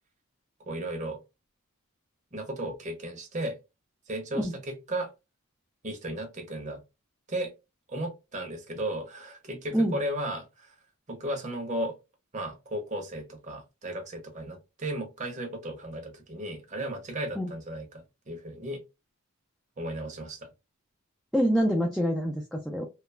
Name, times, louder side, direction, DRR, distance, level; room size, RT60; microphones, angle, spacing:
voice 1, 0.7-1.2 2.3-3.6 4.1-5.1 5.8-6.8 7.3-7.5 7.9-10.8 11.1-11.9 12.3-18.8 19.8-20.5, right 1 dB, 35° right, 0.7 m, -35 dB
voice 2, 21.3-22.9, equal, ahead, 0.3 m, -26 dB
3.1 x 2.0 x 2.2 m
head